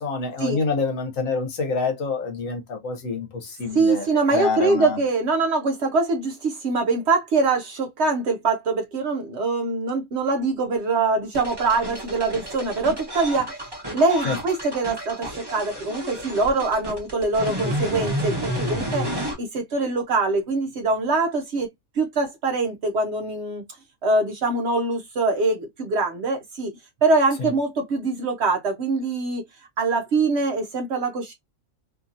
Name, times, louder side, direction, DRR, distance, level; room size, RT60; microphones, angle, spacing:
voice 1, 0.0-5.0 14.2-14.4 27.4-27.5, left 4 dB, 70° left, 1.1 m, -27 dB
voice 2, 3.7-13.5 13.9-21.7 22.0-23.6 24.0-26.7 27.0-29.4 29.8-31.3, right 3 dB, 60° right, 0.8 m, -23 dB
sound 1, 11.3-19.3, equal, 20° right, 0.9 m, -30 dB
2.7 x 2.7 x 2.5 m
omnidirectional pair, 1.5 m